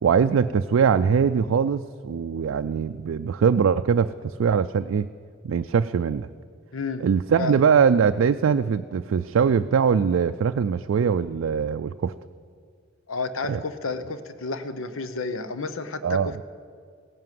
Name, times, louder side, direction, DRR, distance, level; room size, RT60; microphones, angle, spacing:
voice 1, 0.0-5.1 5.4-6.3 7.0-12.1 13.5-13.6 16.0-16.4, right 6 dB, 75° right, 8 dB, 0.4 m, -22 dB
voice 2, 6.7-7.1 7.4-7.6 13.1-16.4, left 3 dB, 90° left, 11 dB, 0.9 m, -31 dB
16.5 x 11.0 x 7.6 m, 2.1 s
head